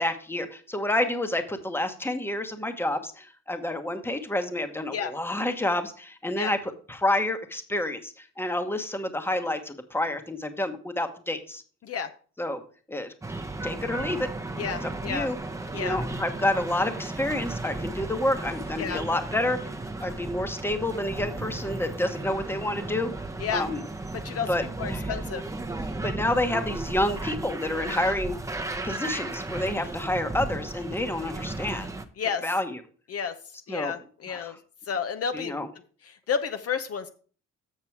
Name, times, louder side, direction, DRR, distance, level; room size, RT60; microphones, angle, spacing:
voice 1, 0.0-11.6 12.4-12.6 12.9-13.1 13.6-14.3 14.8-15.4 15.7-19.6 20.0-23.1 23.5-23.8 24.5-25.1 26.0-28.4 28.8-31.9 32.4-32.8 33.7-33.9 34.3-34.6 35.3-35.7, left 1 dB, 10° left, 8 dB, 1.1 m, -29 dB
sound 1, 13.2-32.1, right 2 dB, 10° right, 0.8 m, -35 dB
voice 2, 14.6-15.3 15.7-16.0 18.8-19.0 23.4-23.7 24.2-24.5 24.8-25.4 32.2-32.4 33.1-33.3 33.7-34.5 34.9-35.5 36.3-37.1, left 6 dB, 55° left, 8 dB, 0.8 m, -30 dB
7.3 x 6.6 x 4.6 m, 0.41 s
cardioid pair, 90°, 30 cm